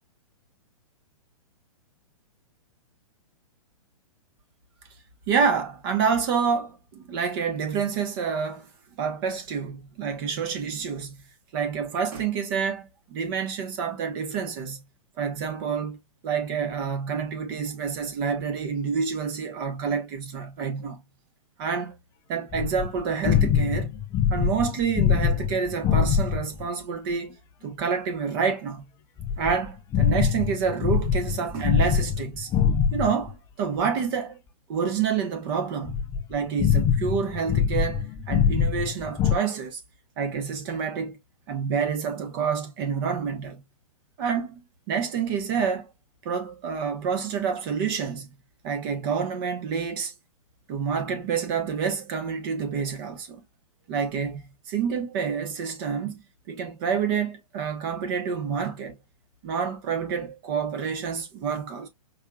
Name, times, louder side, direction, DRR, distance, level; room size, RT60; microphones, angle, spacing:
voice 1, 5.3-8.7 9.0-11.2 11.5-14.8 15.2-16.0 16.2-21.0 21.6-21.9 22.3-23.9 24.3-27.4 27.6-28.8 29.4-32.5 32.9-34.4 34.7-39.8 40.2-41.2 41.5-43.6 44.2-44.6 44.9-45.9 46.2-48.3 48.6-50.1 50.7-53.4 53.9-56.2 56.5-58.9 59.4-61.9, right 6 dB, 40° right, 1.1 m, -28 dB
sound 1, 22.5-26.6 29.2-33.3 35.9-39.4, left 8 dB, 15° left, 0.4 m, -24 dB
4.8 x 3.4 x 2.3 m
figure-of-eight pair, 115°, 19 cm